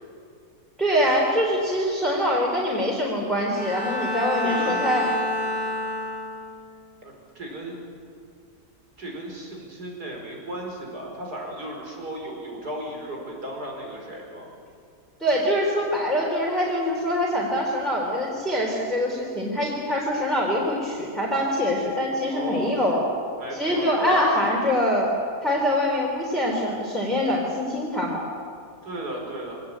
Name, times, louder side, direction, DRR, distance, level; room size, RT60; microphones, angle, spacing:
voice 1, 0.8-5.1 15.2-23.0 23.5-25.1 25.4-28.3, equal, ahead, -4 dB, 3.5 m, -24 dB
Bowed string instrument, 3.5-6.7, left 1 dB, 25° right, 3.1 m, -29 dB
voice 2, 4.4-4.9 7.0-7.9 9.0-14.5 22.3-23.1 23.4-25.0 28.8-29.6, right 1 dB, 70° right, 0 dB, 5.4 m, -35 dB
24.5 x 18.5 x 8.7 m, 2.3 s
omnidirectional pair, 1.8 m